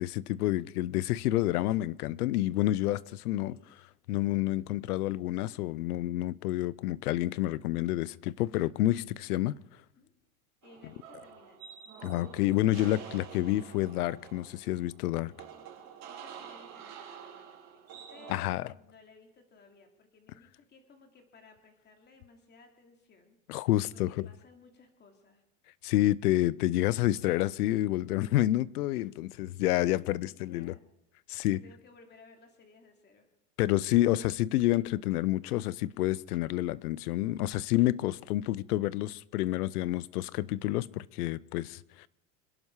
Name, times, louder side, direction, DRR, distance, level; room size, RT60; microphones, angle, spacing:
voice 1, 0.0-3.6 4.1-9.6 12.0-15.3 18.3-18.7 23.5-24.3 25.8-30.7 31.3-31.6 33.6-42.1, left 15 dB, 85° left, 0.7 m, -29 dB
voice 2, 3.4-3.7 9.9-10.1 10.6-11.7 16.0-23.4 23.9-25.4 29.8-30.8 31.5-33.3 33.9-34.0, left 4 dB, 25° left, 2.8 m, -58 dB
sound 1, 10.6-18.4, right 8 dB, 35° right, 4.3 m, -48 dB
26.5 x 11.0 x 4.8 m
supercardioid pair, 140°, 44 cm